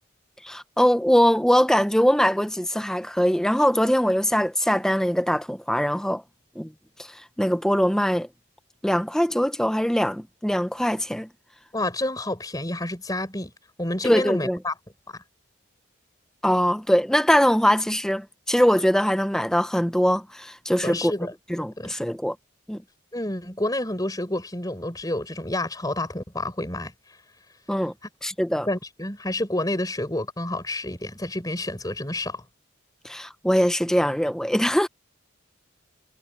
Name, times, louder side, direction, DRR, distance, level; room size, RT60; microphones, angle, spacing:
voice 1, 0.4-6.2 6.6-6.7 7.0-8.3 8.8-11.3 14.0-14.6 16.4-21.1 21.5-22.3 22.7-22.8 27.7-27.9 28.2-28.7 33.0-34.9, equal, 5° left, 0.7 m, -22 dB
voice 2, 11.7-13.5 13.8-14.7 20.8-21.3 21.8-21.9 23.1-26.9 28.6-32.4, left 1 dB, 20° left, 4.4 m, -29 dB
head